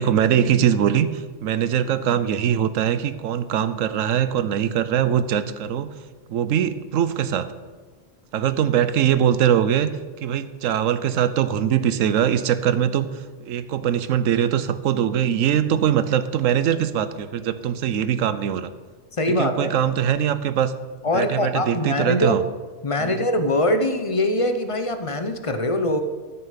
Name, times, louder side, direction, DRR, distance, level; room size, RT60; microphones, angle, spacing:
voice 1, 0.0-5.9 6.3-7.5 8.3-9.9 10.2-13.1 13.4-18.7 19.4-20.7 21.1-22.4 23.0-23.2, right 9 dB, 90° right, 13 dB, 1.1 m, -22 dB
voice 2, 19.2-19.8 21.0-22.4 22.8-26.0, left 1 dB, 30° left, 8 dB, 0.7 m, -23 dB
12.5 x 6.7 x 5.7 m, 1.4 s
omnidirectional pair, 1.3 m